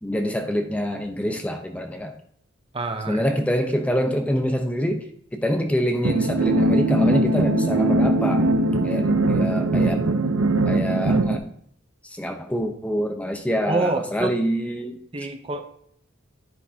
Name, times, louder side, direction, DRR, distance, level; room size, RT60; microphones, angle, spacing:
voice 1, 0.0-2.1 3.1-5.1 5.3-8.4 8.8-10.0 10.7-11.5 12.0-15.0, equal, 5° left, 5 dB, 0.7 m, -25 dB
voice 2, 2.7-3.2 13.7-14.3 15.1-15.6, right 2 dB, 25° right, 6 dB, 0.7 m, -26 dB
sound 1, 6.0-11.4, right 2 dB, 85° right, 0.7 m, -21 dB
10.0 x 9.8 x 2.8 m, 0.66 s
head